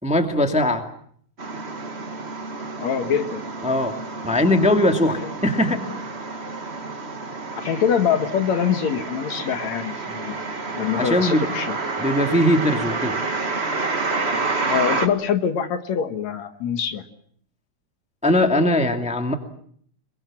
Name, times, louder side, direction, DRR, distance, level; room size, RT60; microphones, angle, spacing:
voice 1, 0.0-0.8 3.6-3.9 4.2-5.8 10.9-11.5 12.0-13.2 18.2-19.3, left 1 dB, 5° right, 5 dB, 1.8 m, -20 dB
sound 1, 1.4-15.1, right 3 dB, 30° right, 1.5 m, -29 dB
voice 2, 2.8-3.4 7.6-10.4 10.7-11.7 14.7-17.0, left 7 dB, 70° left, 8 dB, 2.7 m, -24 dB
26.5 x 22.5 x 7.5 m, 0.63 s
omnidirectional pair, 3.4 m